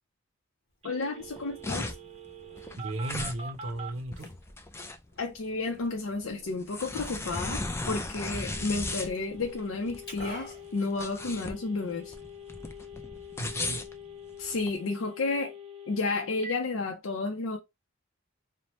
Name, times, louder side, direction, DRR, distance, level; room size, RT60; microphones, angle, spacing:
Liquid, 0.7-11.7, equal, 50° left, 1.1 m, -53 dB
voice 1, 0.8-1.9 5.2-12.1 14.4-15.5 15.9-17.6, left 3 dB, 85° left, 0.5 m, -32 dB
Telephone, 0.8-3.9 8.4-16.5, left 2 dB, 30° right, 0.6 m, -45 dB
sound 1, 1.2-14.7, left 2 dB, 15° left, 0.3 m, -37 dB
voice 2, 2.8-4.3 13.4-13.9, right 2 dB, 80° right, 0.5 m, -36 dB
2.8 x 2.1 x 2.9 m
head